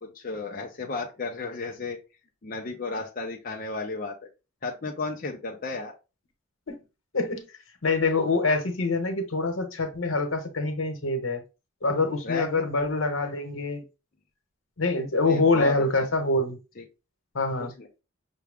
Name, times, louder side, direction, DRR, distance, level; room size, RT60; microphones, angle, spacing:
voice 1, 0.0-2.0 2.4-4.3 4.6-5.9 12.2-12.7 15.3-15.8 16.8-16.9 17.6-17.9, left 3 dB, 40° left, 0 dB, 0.5 m, -33 dB
voice 2, 7.1-7.5 7.8-11.4 11.8-13.8 14.8-16.6 17.3-17.7, left 3 dB, 75° left, 6 dB, 1.1 m, -25 dB
5.8 x 2.2 x 3.4 m, 0.28 s
head